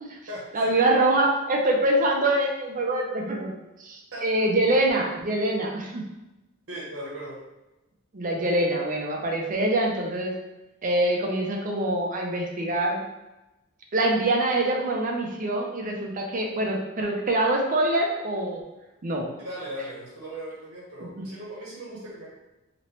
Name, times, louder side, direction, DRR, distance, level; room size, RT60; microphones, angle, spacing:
voice 1, 0.5-3.5 3.8-6.0 8.1-10.3 10.8-13.0 13.9-18.6 19.0-19.3 21.0-21.1, right 1 dB, 40° right, 1 dB, 0.5 m, -24 dB
voice 2, 6.7-7.4 19.4-22.3, right 1 dB, 55° right, -6 dB, 0.9 m, -38 dB
3.0 x 2.9 x 3.0 m, 1.0 s
head